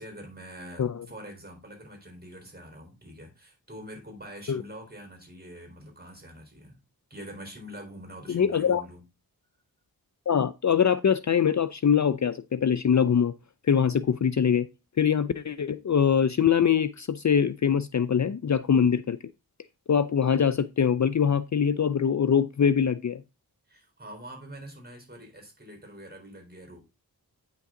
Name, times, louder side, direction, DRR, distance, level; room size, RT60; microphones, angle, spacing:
voice 1, 0.0-6.8 7.1-9.0 23.7-26.8, equal, 25° right, 4.0 m, -45 dB
voice 2, 8.3-8.8 10.3-13.3 13.7-14.7 15.0-19.2 19.9-23.2, left 7 dB, 50° left, 0.5 m, -23 dB
9.1 x 5.9 x 3.7 m
wide cardioid pair, 80°, 37 cm